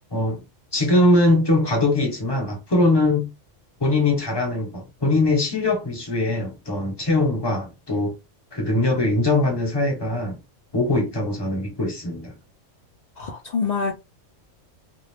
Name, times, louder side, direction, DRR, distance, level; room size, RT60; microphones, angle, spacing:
voice 1, 0.1-0.4 0.7-3.3 3.8-8.1 8.5-10.4 10.7-12.3, left 2 dB, 20° left, 0.9 m, -21 dB
voice 2, 13.2-14.0, left 5 dB, 50° left, 0.5 m, -26 dB
2.5 x 2.4 x 3.3 m
omnidirectional pair, 1.3 m